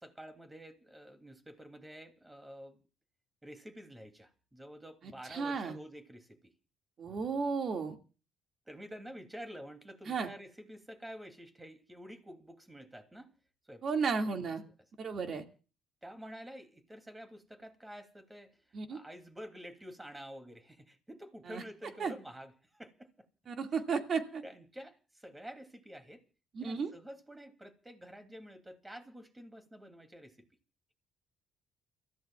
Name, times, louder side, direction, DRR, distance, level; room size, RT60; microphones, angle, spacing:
voice 1, 0.0-2.8 3.4-6.5 8.7-13.4 13.7-14.1 16.0-23.3 24.4-26.2 26.6-30.5, equal, 15° right, 2.9 m, -49 dB
voice 2, 5.0-5.8 7.0-8.0 10.1-10.3 13.8-14.6 15.0-15.4 18.7-19.0 21.5-21.6 22.0-22.1 23.5-24.4 26.5-26.9, right 5 dB, 50° right, 2.2 m, -34 dB
30.0 x 14.5 x 2.4 m
supercardioid pair, 65°, 0 cm